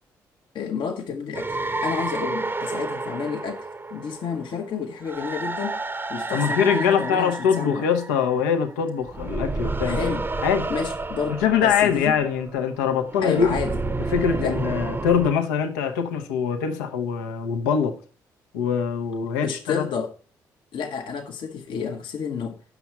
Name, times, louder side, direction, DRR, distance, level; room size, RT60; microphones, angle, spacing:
voice 1, 0.5-1.6 1.8-5.8 6.1-7.9 9.8-10.3 10.7-12.1 13.2-13.8 14.4-14.6 19.4-20.2 20.7-22.6, left 6 dB, 60° left, 0.9 m, -30 dB
sound 1, 1.3-8.7 9.0-15.3, right 3 dB, 25° right, 0.7 m, -30 dB
voice 2, 6.3-10.1 10.4-10.7 11.4-13.6 14.1-18.0 18.5-19.8, left 7 dB, 85° left, 0.8 m, -23 dB
7.0 x 6.1 x 5.6 m
hypercardioid pair, 45°, 9 cm